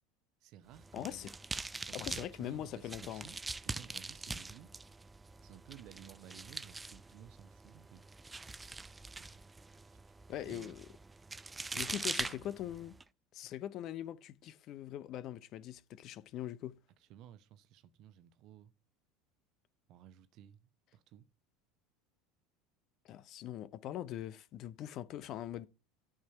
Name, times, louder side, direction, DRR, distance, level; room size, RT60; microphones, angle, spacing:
voice 1, 0.4-1.3 1.9-4.7 5.4-8.0 9.1-9.4 9.9-10.1 10.4-10.7 11.6-12.5 17.0-18.7 19.9-21.3, right 11 dB, 50° right, 0.9 m, -56 dB
sound 1, 0.7-13.0, right 3 dB, 15° right, 0.4 m, -44 dB
voice 2, 0.9-1.3 1.9-3.3 10.3-10.9 11.8-12.9 13.3-16.8 23.0-25.7, left 12 dB, 45° left, 0.7 m, -42 dB
11.5 x 6.1 x 4.5 m
figure-of-eight pair, 70°, 0 cm